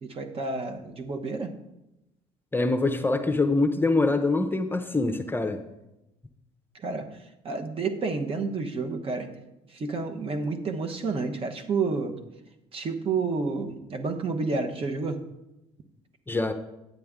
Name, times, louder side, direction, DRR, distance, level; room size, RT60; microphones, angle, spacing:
voice 1, 0.0-1.5 6.7-9.3 9.7-12.2 12.7-15.2, right 4 dB, 40° right, 5 dB, 1.0 m, -30 dB
voice 2, 2.5-5.6 16.3-16.5, left 3 dB, 15° left, 6 dB, 0.7 m, -24 dB
9.5 x 7.7 x 3.6 m, 0.92 s
supercardioid pair, 75°, 14 cm